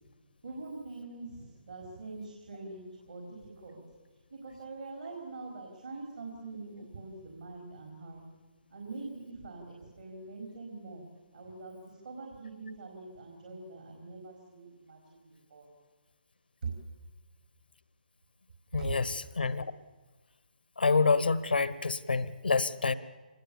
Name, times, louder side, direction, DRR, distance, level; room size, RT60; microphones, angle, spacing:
voice 1, 0.4-3.3 3.6-3.8 4.3-8.2 8.7-11.0 11.3-15.2 15.5-15.7 18.8-18.9, right 3 dB, 65° right, 0 dB, 4.7 m, -44 dB
voice 2, 18.7-19.7 20.8-22.9, left 4 dB, 75° left, 16 dB, 1.2 m, -27 dB
25.5 x 20.5 x 7.1 m, 1.3 s
figure-of-eight pair, 140°, 5 cm